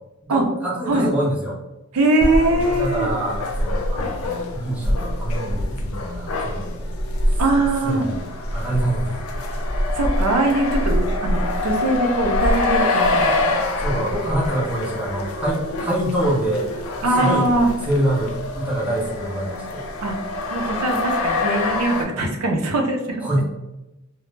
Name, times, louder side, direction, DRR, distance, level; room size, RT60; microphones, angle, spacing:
voice 1, 0.2-1.6 2.7-6.8 7.3-7.4 7.8-8.2 8.5-9.3 13.8-16.7 17.0-17.5 17.9-19.9 23.2-23.4, right 1 dB, 5° right, -5 dB, 0.5 m, -25 dB
voice 2, 1.9-3.1 7.4-8.1 9.9-13.6 14.2-14.5 17.0-17.7 20.0-20.2 20.5-23.4, right 2 dB, 85° right, 2 dB, 0.5 m, -21 dB
sound 1, 2.2-22.0, left 2 dB, 75° left, 0.4 m, -25 dB
2.0 x 2.0 x 3.1 m, 1.0 s
head